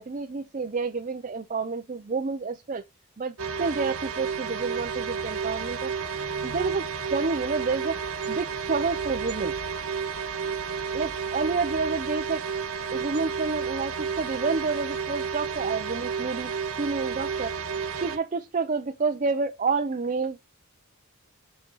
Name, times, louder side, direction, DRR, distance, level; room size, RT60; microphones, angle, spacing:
voice 1, 0.0-2.8 3.2-5.9 6.4-8.0 8.3-9.5 10.9-12.4 12.9-16.5 16.8-17.5 17.9-20.6, right 4 dB, 35° right, 0.5 m, -29 dB
sound 1, 3.4-18.2, right 6 dB, 75° right, 1.4 m, -31 dB
7.4 x 4.3 x 3.9 m
head